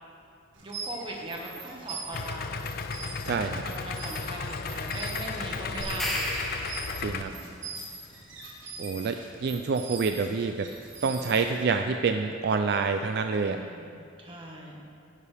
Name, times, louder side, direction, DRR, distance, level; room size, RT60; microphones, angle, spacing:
sound 1, 0.5-11.8, right 4 dB, 80° right, 1.7 m, -43 dB
voice 1, 0.6-2.6 3.6-6.2 7.1-7.6 11.0-11.4 13.4-14.8, right 1 dB, 25° right, -2 dB, 1.5 m, -40 dB
Idling, 2.1-7.2, left 5 dB, 50° left, 0.4 m, -35 dB
voice 2, 3.2-3.6 7.0-7.3 8.8-10.7 11.0-13.6, right 5 dB, 55° right, 7 dB, 0.3 m, -27 dB
sound 2, 5.8-7.4, left 1 dB, ahead, 1.1 m, -33 dB
11.0 x 10.5 x 3.4 m, 2.6 s
head